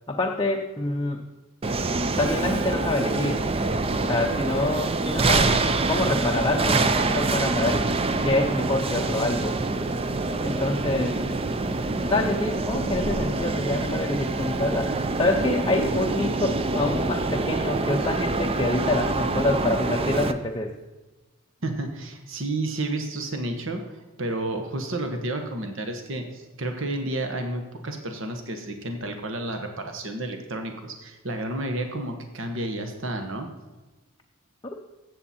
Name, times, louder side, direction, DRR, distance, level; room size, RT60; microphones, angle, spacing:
voice 1, 0.1-1.2 2.2-3.4 4.0-7.9 8.2-9.6 10.4-11.2 12.1-20.8, left 2 dB, 20° left, 1 dB, 0.6 m, -26 dB
sound 1, 1.6-20.3, right 3 dB, 25° right, 0.5 m, -25 dB
voice 2, 21.6-33.5, right 2 dB, 60° right, 5 dB, 1.3 m, -31 dB
15.0 x 7.7 x 4.3 m, 1.2 s
head